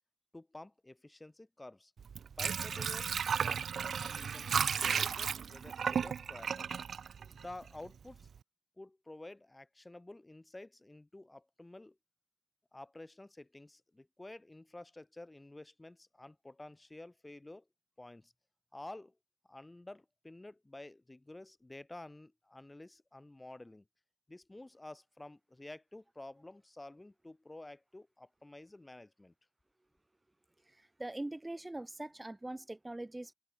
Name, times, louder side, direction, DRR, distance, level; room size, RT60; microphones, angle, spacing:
voice 1, 0.3-1.9 2.4-6.8 7.3-8.3 8.8-12.0 12.7-17.6 18.0-18.3 18.7-19.1 19.5-23.8 24.3-29.3, left 2 dB, 15° left, 2.8 m, -51 dB
Water / Sink (filling or washing), 2.0-7.9 8.2-8.3, right 7 dB, 75° right, 0.5 m, -34 dB
voice 2, 30.6-33.3, right 1 dB, 15° right, 1.7 m, -42 dB
wide cardioid pair, 155°, 0 cm